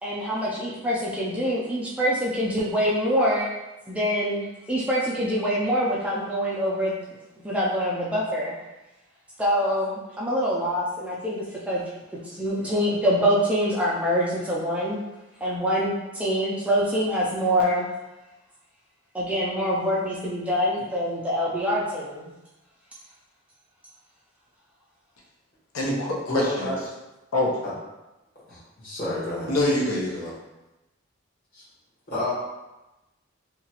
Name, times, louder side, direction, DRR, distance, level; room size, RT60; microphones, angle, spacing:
voice 1, 0.0-3.5 3.9-6.9 7.4-8.5 9.4-11.8 12.3-15.0 15.4-17.9 19.1-22.3, equal, 5° right, -6 dB, 0.3 m, -25 dB
voice 2, 25.7-26.7 27.3-27.6 29.5-30.3, left 1 dB, 85° left, -3 dB, 0.6 m, -25 dB
voice 3, 26.3-26.8 27.6-27.7 28.5-29.5 31.5-31.7 32.1-32.3, left 1 dB, 45° left, -9 dB, 1.2 m, -29 dB
2.8 x 2.3 x 2.8 m, 1.0 s
head